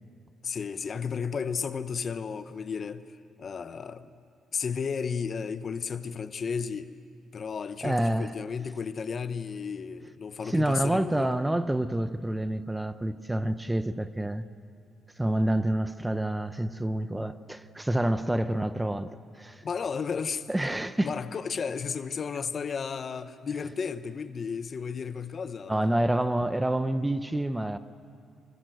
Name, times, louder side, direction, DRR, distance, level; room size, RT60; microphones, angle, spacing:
voice 1, 0.4-3.0 3.4-4.1 4.5-6.9 7.3-11.3 19.6-20.5 21.0-26.0, left 6 dB, 45° left, 1.0 m, -33 dB
voice 2, 7.8-8.3 10.5-14.4 15.2-19.6 20.5-21.1 25.7-27.8, right 1 dB, 10° right, 0.7 m, -28 dB
24.5 x 22.5 x 7.9 m
cardioid pair, 90°, 0 cm